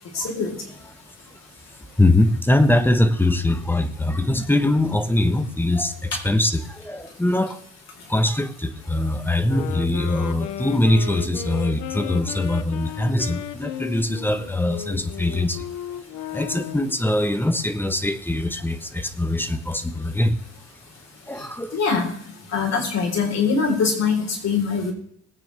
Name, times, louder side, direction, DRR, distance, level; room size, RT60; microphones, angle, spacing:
voice 1, 0.1-0.5 21.7-22.1 22.5-24.9, left 5 dB, 60° left, 0 dB, 4.3 m, -22 dB
voice 2, 1.8-7.6 8.1-15.7 16.3-20.4 21.3-21.8, left 1 dB, 5° left, 10 dB, 1.2 m, -22 dB
sound 1, 9.4-17.0, left 10 dB, 85° left, 0.9 m, -34 dB
20.5 x 9.0 x 3.5 m, 0.69 s
cardioid pair, 90°, 30 cm